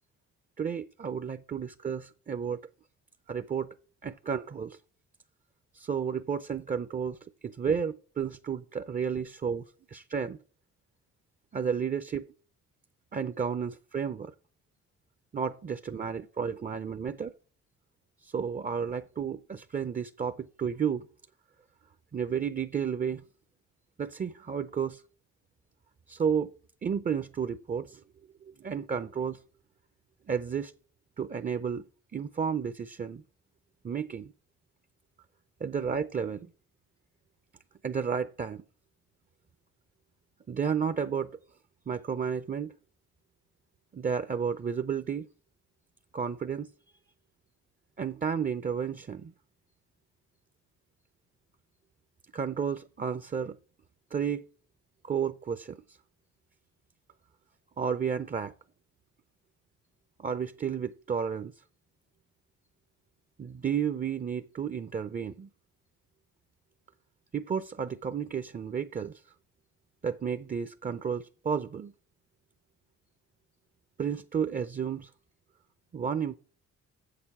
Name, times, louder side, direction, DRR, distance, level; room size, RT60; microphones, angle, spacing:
voice 1, 0.6-2.6 3.3-3.7 4.0-4.8 5.7-7.2 7.4-9.6 9.9-10.4 11.5-12.3 13.1-14.3 15.3-17.3 18.2-21.1 22.1-23.2 24.0-25.0 26.1-26.5 26.8-28.0 28.6-29.4 30.3-30.7 31.2-31.8 32.1-33.2 33.8-34.3 35.6-36.5 37.8-38.6 40.5-41.4 41.9-42.7 43.9-45.3 46.1-46.7 48.0-49.3 52.3-53.6 54.1-54.4 55.0-55.8 57.8-58.5 60.2-61.5 63.4-65.5 67.3-69.2 70.0-71.9 74.0-75.1 75.9-76.4, right 7 dB, 30° right, 0.6 m, -32 dB
7.6 x 6.8 x 7.2 m
cardioid pair, 90°, 30 cm